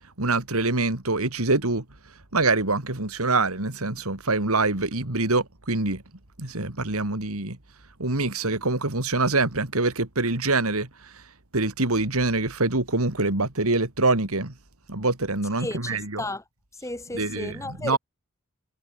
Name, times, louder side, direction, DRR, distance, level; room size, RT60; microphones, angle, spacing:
voice 1, 0.2-1.8 2.3-6.0 6.4-7.6 8.0-11.2 11.5-14.5 14.9-16.2 17.1-18.0, right 3 dB, 80° right, 3.0 m, -25 dB
voice 2, 15.6-16.4 16.8-18.0, left 1 dB, 15° left, 2.9 m, -33 dB
head